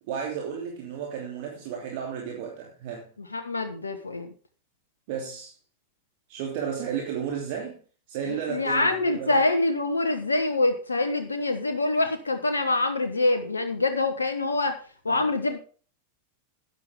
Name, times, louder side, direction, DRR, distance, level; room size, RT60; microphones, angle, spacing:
voice 1, 0.1-3.1 5.1-5.5 6.3-7.8 8.1-9.4 15.1-15.3, right 8 dB, 50° right, 3.0 m, -33 dB
voice 2, 3.2-4.3 8.3-14.8 15.0-15.6, left 2 dB, 75° left, 1.4 m, -25 dB
13.0 x 10.0 x 3.7 m
figure-of-eight pair, 90°, 0 cm